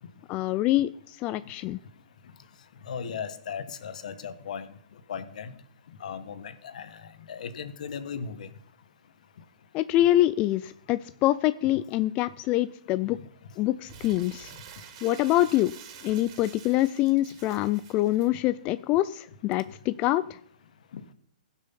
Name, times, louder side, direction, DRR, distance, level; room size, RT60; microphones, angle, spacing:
voice 1, 0.3-1.8 9.7-13.2 13.6-14.5 15.0-15.7 16.0-20.4, left 15 dB, 30° left, 15 dB, 0.3 m, -25 dB
voice 2, 2.9-4.7 5.1-5.5 6.0-7.0 7.3-8.5, left 6 dB, 65° left, 12 dB, 1.3 m, -36 dB
Crumpling crinkling, 13.9-18.3, right 8 dB, 45° right, 1.7 m, -48 dB
16.0 x 6.3 x 5.7 m, 0.65 s
hypercardioid pair, 130°, 4 cm